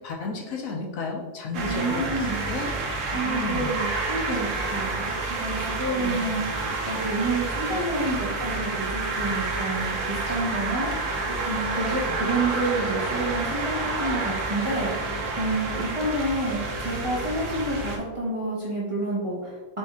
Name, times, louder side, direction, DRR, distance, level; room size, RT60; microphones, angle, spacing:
voice 1, 0.0-2.7 3.2-3.7 5.9-6.2 12.1-12.2, left 3 dB, 70° left, 0 dB, 1.1 m, -33 dB
voice 2, 1.5-2.4 3.1-11.1 11.4-15.1 15.4-19.8, right 2 dB, 25° right, -6 dB, 0.9 m, -29 dB
sound 1, 1.5-18.0, right 3 dB, 60° right, 1.1 m, -29 dB
4.2 x 3.5 x 3.5 m, 1.2 s
omnidirectional pair, 1.6 m